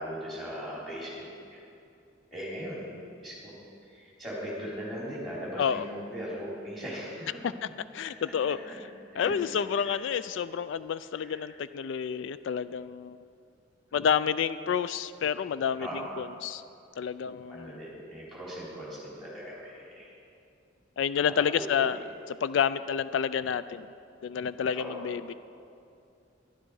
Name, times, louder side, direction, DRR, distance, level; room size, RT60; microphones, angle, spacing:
voice 1, 0.0-1.6 2.3-2.9 3.2-3.5 3.9-7.4 8.2-8.3 9.1-9.3 9.8-10.0 11.2-11.5 13.9-14.0 15.8-16.1 17.5-20.1 21.3-21.8 24.6-25.0, equal, ahead, -7 dB, 3.6 m, -39 dB
voice 2, 7.9-8.6 9.2-13.2 13.9-16.6 17.0-17.8 21.0-22.0 22.3-23.9 24.2-25.3, left 7 dB, 70° left, 15 dB, 0.3 m, -29 dB
12.0 x 11.5 x 4.8 m, 2.5 s
head